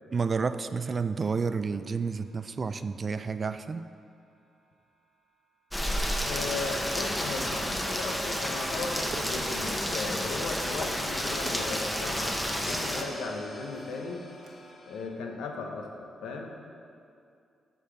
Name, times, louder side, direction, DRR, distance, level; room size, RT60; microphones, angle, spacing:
voice 1, 0.1-3.9, right 5 dB, 40° right, 11 dB, 0.3 m, -30 dB
sound 1, 1.8-4.9 12.7-15.1, left 1 dB, 55° left, 1.6 m, -46 dB
Rain, 5.7-13.0, equal, 10° left, 0.9 m, -31 dB
voice 2, 6.2-14.3 14.8-16.5, left 3 dB, 90° left, 2 dB, 0.8 m, -36 dB
sound 2, 8.8-14.7, right 3 dB, 75° right, 1.1 m, -49 dB
8.2 x 4.0 x 6.9 m, 2.5 s
cardioid pair, 70°, 0 cm